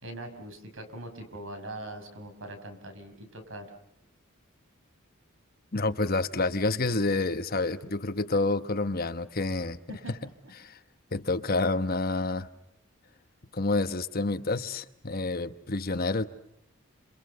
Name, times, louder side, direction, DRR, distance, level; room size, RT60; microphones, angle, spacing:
voice 1, 0.0-3.7 6.3-6.5 9.9-10.3, right 1 dB, 65° right, 5.8 m, -42 dB
voice 2, 5.7-9.8 10.6-10.8 11.1-12.5 13.5-16.2, left 3 dB, 45° left, 1.1 m, -28 dB
29.0 x 27.5 x 6.8 m
head